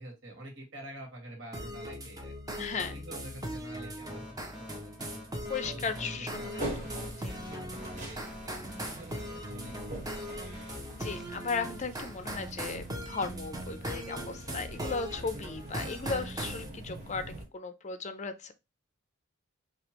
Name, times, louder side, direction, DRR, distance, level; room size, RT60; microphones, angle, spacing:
voice 1, 0.0-2.3 2.7-5.2 5.6-6.7 7.3-10.5, right 1 dB, 60° right, 2.0 m, -47 dB
sound 1, 1.5-16.7, equal, 20° right, 0.8 m, -40 dB
voice 2, 2.6-3.0 5.5-6.3 6.6-6.9 7.2-7.3 10.9-18.5, left 4 dB, 35° left, 0.5 m, -36 dB
sound 2, 4.1-12.4, left 1 dB, ahead, 1.2 m, -49 dB
sound 3, 6.6-17.4, right 1 dB, 40° right, 1.6 m, -44 dB
5.1 x 2.9 x 3.0 m
head